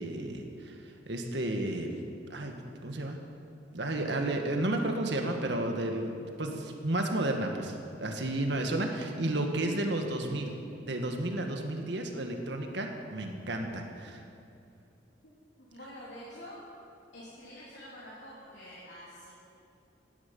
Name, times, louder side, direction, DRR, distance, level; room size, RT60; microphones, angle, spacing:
voice 1, 0.0-2.0 2.3-2.5 2.8-3.2 3.7-6.1 6.4-10.5 10.8-14.2, right 1 dB, 75° right, 3 dB, 1.7 m, -32 dB
voice 2, 15.6-16.6 17.1-19.3, equal, 75° left, -8 dB, 3.2 m, -47 dB
17.0 x 12.0 x 5.5 m, 2.6 s
head